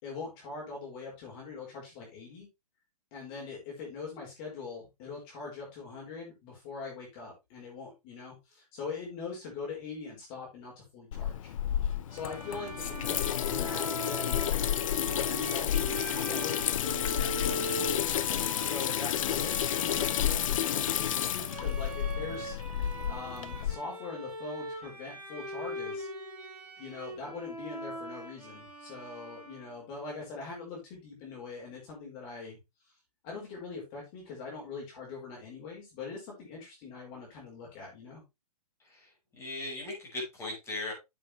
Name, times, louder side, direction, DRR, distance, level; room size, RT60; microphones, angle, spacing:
voice 1, 0.0-2.5 3.1-11.5 12.1-14.5 15.3-15.7 16.1-17.9 18.6-22.6 23.0-26.1 26.8-32.6 32.8-32.9 33.2-38.2, left 4 dB, 35° left, -2 dB, 4.9 m, -42 dB
Water tap faucet / Sink (filling or washing), 11.1-23.8, left 10 dB, 55° left, 0.8 m, -31 dB
Bowed string instrument, 12.1-29.9, right 1 dB, 5° right, 4.3 m, -41 dB
voice 2, 38.9-40.9, left 2 dB, 15° left, -2 dB, 5.7 m, -38 dB
9.6 x 7.6 x 3.3 m, 0.23 s
hypercardioid pair, 135°, 20 cm